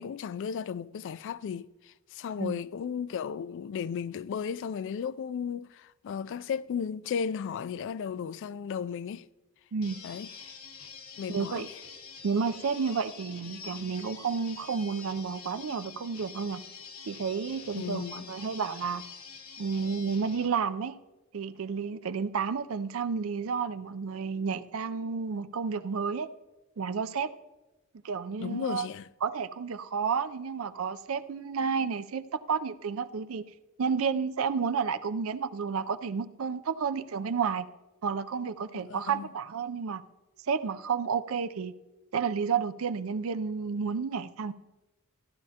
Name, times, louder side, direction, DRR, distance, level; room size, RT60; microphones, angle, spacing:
voice 1, 0.0-1.7 2.1-9.3 10.0-10.5 11.2-11.7 17.8-18.3 28.4-29.1 38.7-39.3, left 7 dB, 60° left, 0.3 m, -35 dB
sound 1, 9.8-20.5, left 5 dB, 85° left, 1.3 m, -46 dB
voice 2, 11.3-11.7 12.2-16.6 17.1-19.0 19.6-21.0 21.3-26.3 26.8-27.3 28.0-28.9 29.2-33.4 33.8-37.7 38.0-40.0 40.5-41.7 42.1-44.5, right 6 dB, 70° right, 0.5 m, -31 dB
15.0 x 11.5 x 2.8 m
head